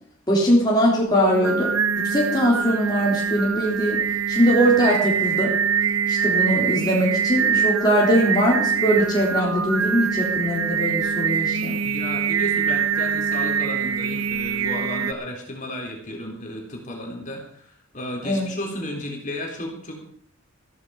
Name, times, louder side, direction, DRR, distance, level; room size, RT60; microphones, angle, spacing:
voice 1, 0.3-5.6 6.1-11.8 18.2-18.5, equal, 20° left, -4 dB, 3.5 m, -21 dB
Singing, 1.1-15.1, right 7 dB, 80° right, 0.9 m, -24 dB
voice 2, 11.8-19.9, left 1 dB, 35° left, 0 dB, 3.9 m, -33 dB
15.0 x 14.0 x 5.0 m, 0.63 s
head